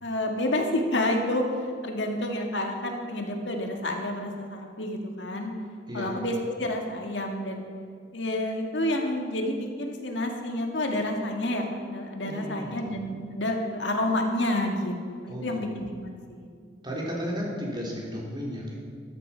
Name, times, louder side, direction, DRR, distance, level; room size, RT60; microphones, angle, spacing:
voice 1, 0.0-5.5 5.9-7.7 8.1-14.9 15.2-15.9 16.3-16.5, left 1 dB, 75° left, 2 dB, 2.0 m, -29 dB
voice 2, 12.2-12.9 15.3-15.6 16.8-18.8, equal, 25° right, -3 dB, 3.5 m, -34 dB
13.5 x 13.5 x 5.7 m, 2.2 s
head